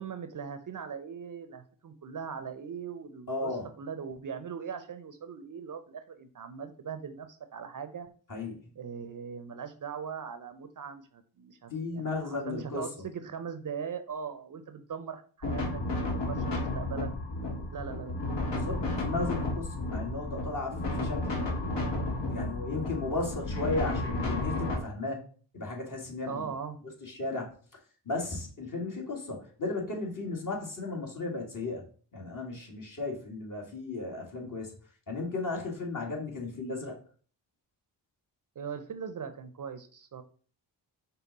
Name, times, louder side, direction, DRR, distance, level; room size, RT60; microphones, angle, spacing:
voice 1, 0.0-8.1 8.8-16.0 16.3-17.1 17.7-18.8 26.3-26.8 38.6-40.2, right 6 dB, 45° right, 9 dB, 0.6 m, -40 dB
voice 2, 3.3-3.7 8.3-8.6 11.7-12.8 18.5-21.6 21.9-25.2 25.5-26.5 27.0-27.5 28.1-31.8 32.1-34.7 35.1-37.0, left 3 dB, 45° left, -1 dB, 1.8 m, -35 dB
sound 1, 15.4-24.8, left 2 dB, 65° left, 1.3 m, -32 dB
5.3 x 2.2 x 4.0 m, 0.42 s
cardioid pair, 60°, 45 cm